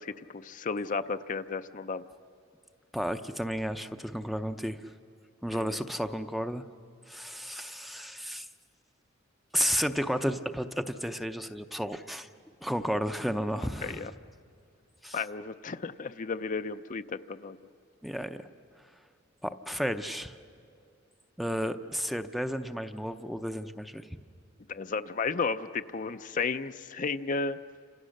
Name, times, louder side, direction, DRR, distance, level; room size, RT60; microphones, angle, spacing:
voice 1, 0.0-2.0 5.5-5.8 13.8-14.1 15.1-17.6 24.7-27.6, left 4 dB, 40° left, 10 dB, 0.5 m, -33 dB
voice 2, 2.9-4.8 5.4-6.6 7.1-8.5 9.5-12.3 12.6-14.1 15.0-15.2 18.0-18.5 19.4-20.3 21.4-24.1, equal, ahead, 9 dB, 0.6 m, -32 dB
29.5 x 26.5 x 6.5 m, 2.4 s
head